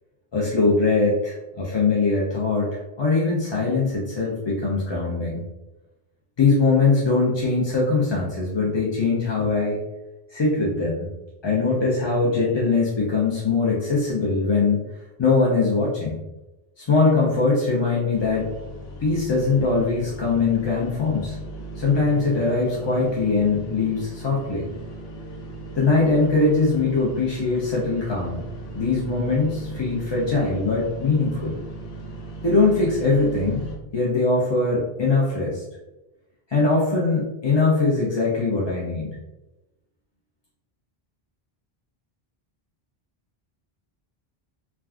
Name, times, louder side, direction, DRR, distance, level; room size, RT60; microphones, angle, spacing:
voice 1, 0.3-5.4 6.4-9.8 10.3-11.1 11.4-14.8 15.2-16.2 16.8-18.5 19.0-21.4 21.8-24.6 25.7-28.4 28.7-31.6 32.4-33.7 33.9-35.6 36.5-39.1, left 3 dB, 45° left, -5 dB, 0.3 m, -21 dB
sound 1, 18.1-33.8, right 1 dB, 85° left, 0.9 m, -37 dB
3.2 x 2.4 x 2.3 m, 1.0 s
omnidirectional pair, 1.0 m